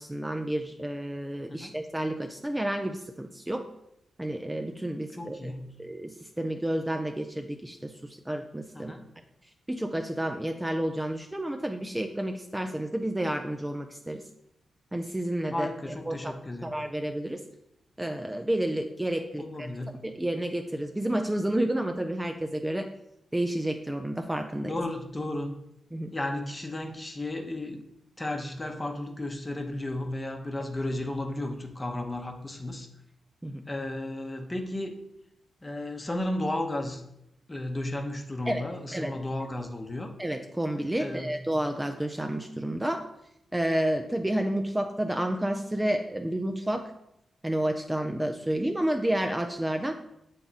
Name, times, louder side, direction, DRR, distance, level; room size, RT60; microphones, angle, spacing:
voice 1, 0.0-3.7 4.2-5.5 5.8-8.9 9.7-14.3 14.9-17.4 18.0-19.7 20.0-22.9 23.3-24.8 25.9-26.1 33.4-33.6 38.5-38.6 38.9-39.2 40.2-43.1 43.5-46.9 47.4-49.9, right 1 dB, 10° right, 5 dB, 0.4 m, -30 dB
voice 2, 5.1-5.7 8.7-9.0 15.5-16.7 19.4-20.0 24.6-25.6 26.1-27.8 28.2-32.9 33.7-34.9 35.6-37.0 37.5-40.1 41.0-41.3, left 1 dB, 20° left, 4 dB, 0.8 m, -34 dB
7.4 x 3.5 x 4.0 m, 0.83 s
cardioid pair, 75°, 0 cm